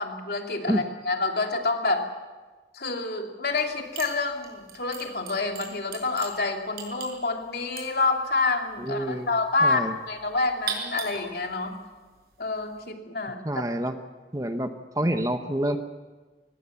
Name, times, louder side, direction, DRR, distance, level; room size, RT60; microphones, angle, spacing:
voice 1, 0.0-2.1 2.7-11.8 12.4-13.4, left 3 dB, 65° left, 3 dB, 2.8 m, -28 dB
sound 1, 3.5-3.7 4.0-12.9, right 7 dB, 60° right, 6.0 m, -40 dB
voice 2, 8.8-9.3 9.6-10.0 13.4-14.0 14.3-15.8, right 1 dB, 20° right, 7 dB, 1.0 m, -27 dB
24.5 x 19.0 x 7.2 m, 1.3 s
head